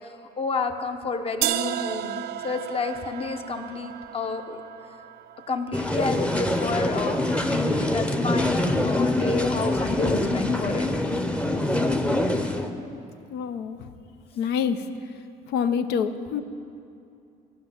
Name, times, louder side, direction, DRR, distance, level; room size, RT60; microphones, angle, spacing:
voice 1, 0.0-4.6 5.5-10.9, left 4 dB, 35° left, 7 dB, 0.9 m, -30 dB
sound 1, 1.4-7.4, right 13 dB, 70° right, 0.4 m, -34 dB
sound 2, 5.7-12.7, left 1 dB, 5° left, 0.7 m, -24 dB
voice 2, 13.3-13.8 14.4-14.8 15.5-16.4, left 7 dB, 80° left, 10 dB, 0.7 m, -26 dB
14.5 x 6.1 x 8.7 m, 2.6 s
cardioid pair, 110°, 17 cm